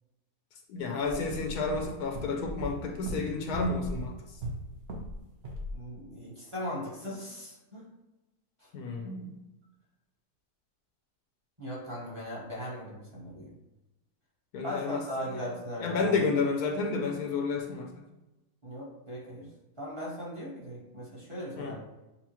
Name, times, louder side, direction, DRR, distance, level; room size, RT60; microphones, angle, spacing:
voice 1, 0.7-4.2 8.7-9.3 14.5-15.0 15.8-18.1 21.6-21.7, left 4 dB, 75° left, 2 dB, 1.1 m, -31 dB
sound 1, 1.0-5.2 5.4-5.7, equal, 50° right, 0.8 m, -38 dB
voice 2, 5.7-7.9 8.6-8.7 11.6-13.5 14.6-16.2 18.6-19.5 19.8-21.8, equal, 20° right, -6 dB, 1.1 m, -38 dB
6.8 x 2.4 x 2.9 m, 1.0 s
omnidirectional pair, 1.7 m